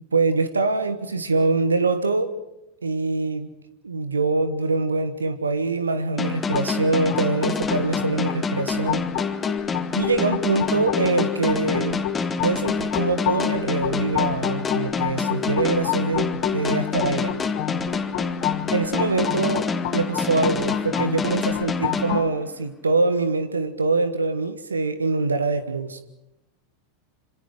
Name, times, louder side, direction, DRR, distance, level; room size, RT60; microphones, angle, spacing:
voice 1, 0.1-2.4 2.8-3.5 3.8-9.0 9.9-12.0 12.4-17.3 18.7-26.0, right 3 dB, 80° right, 12 dB, 1.4 m, -24 dB
sound 1, 6.2-22.8, left 4 dB, 20° left, 2.1 m, -27 dB
sound 2, 6.5-22.3, left 14 dB, 50° left, 2.1 m, -30 dB
27.0 x 26.5 x 4.9 m, 0.91 s
figure-of-eight pair, 85°, 0 cm